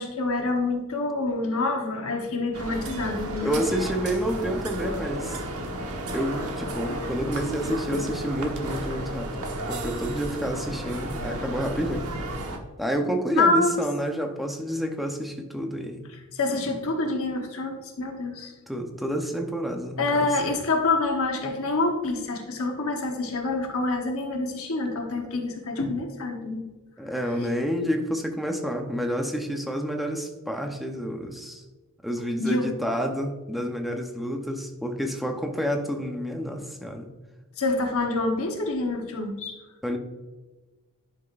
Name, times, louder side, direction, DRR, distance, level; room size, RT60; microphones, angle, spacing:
voice 1, 0.0-3.6 7.3-7.5 7.9-8.1 13.4-13.8 16.3-18.5 20.0-26.6 32.4-32.7 37.6-39.5, left 2 dB, 65° left, 2 dB, 1.1 m, -27 dB
sound 1, 2.5-12.6, right 1 dB, 75° right, 1.2 m, -33 dB
voice 2, 3.4-5.4 6.1-9.3 9.7-12.1 12.8-16.1 16.5-16.8 18.7-20.3 27.0-31.6 32.0-37.1 39.8-40.0, equal, ahead, 3 dB, 0.8 m, -29 dB
11.0 x 5.9 x 2.5 m, 1.2 s
head